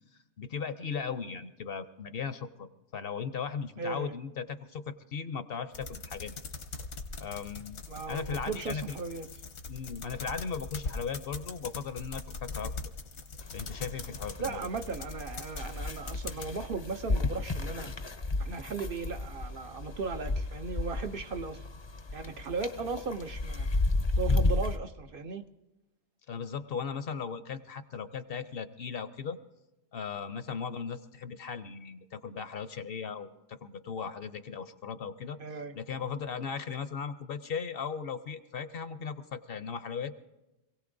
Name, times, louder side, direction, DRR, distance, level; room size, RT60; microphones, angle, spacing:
voice 1, 0.4-2.7 2.9-6.3 7.2-7.8 8.1-9.0 9.7-12.7 13.5-14.7 26.3-29.4 29.9-35.4 35.7-40.2, left 6 dB, 60° left, 11 dB, 0.8 m, -37 dB
voice 2, 3.8-4.2 7.9-9.3 14.4-17.9 18.4-21.7 22.1-23.7 24.2-25.4 35.4-35.8, right 4 dB, 55° right, 7 dB, 0.8 m, -37 dB
sound 1, 5.7-16.5, left 4 dB, 80° left, 1.3 m, -42 dB
sound 2, 13.4-24.8, left 2 dB, 30° left, 0.5 m, -33 dB
26.5 x 17.0 x 2.6 m, 0.99 s
omnidirectional pair, 1.2 m